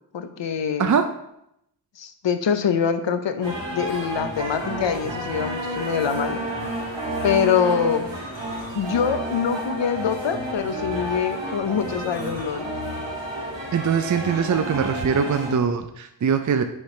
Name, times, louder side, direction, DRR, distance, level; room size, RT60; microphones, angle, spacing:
voice 1, 0.1-0.9 2.0-6.5 7.2-8.1 8.7-12.7, left 7 dB, 80° left, 9 dB, 0.6 m, -24 dB
sound 1, 3.4-15.6, right 1 dB, 80° right, 1.4 m, -30 dB
voice 2, 13.7-16.6, right 7 dB, 45° right, 8 dB, 0.4 m, -22 dB
6.4 x 4.8 x 3.2 m, 0.78 s
wide cardioid pair, 40°, 44 cm